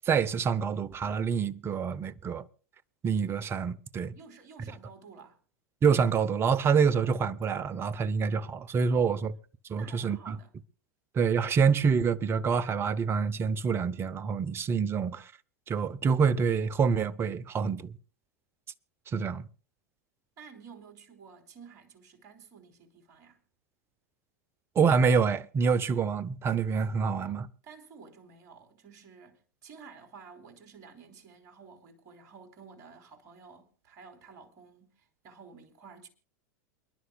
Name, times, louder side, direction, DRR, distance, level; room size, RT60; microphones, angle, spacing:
voice 1, 0.1-2.4 3.0-4.1 5.8-9.3 9.7-10.4 11.1-15.3 15.7-17.9 19.1-19.4 24.8-27.5, right 6 dB, 25° right, 0.8 m, -26 dB
voice 2, 4.1-5.4 8.9-9.3 9.8-10.5 19.1-19.3 20.4-23.4 27.2-36.1, right 5 dB, 45° right, 3.5 m, -52 dB
28.5 x 11.0 x 2.3 m
hypercardioid pair, 95°, 9 cm